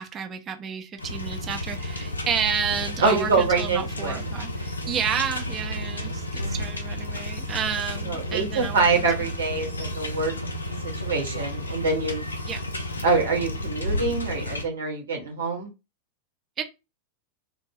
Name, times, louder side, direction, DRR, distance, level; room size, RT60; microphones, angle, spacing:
voice 1, 0.0-9.1 12.5-12.6 16.6-16.7, right 7 dB, 30° right, 0.6 m, -31 dB
sound 1, 1.0-14.7, left 2 dB, 80° left, 0.4 m, -32 dB
sound 2, 2.7-6.9 7.6-11.9, right 2 dB, 90° right, 0.5 m, -40 dB
voice 2, 3.0-4.2 8.0-10.3 10.8-12.3 13.0-15.7, right 4 dB, 70° right, 1.1 m, -25 dB
2.4 x 2.1 x 3.3 m
figure-of-eight pair, 90°, 0 cm